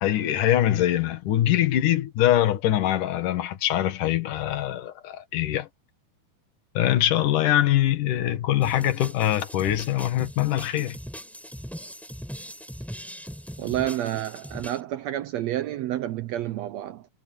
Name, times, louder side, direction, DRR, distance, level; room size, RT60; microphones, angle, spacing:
voice 1, 0.0-5.7 6.7-11.0, left 12 dB, 75° left, 3.1 m, -23 dB
sound 1, 8.6-14.8, equal, ahead, 5.4 m, -40 dB
voice 2, 13.6-17.1, right 13 dB, 80° right, 1.6 m, -29 dB
omnidirectional pair, 3.7 m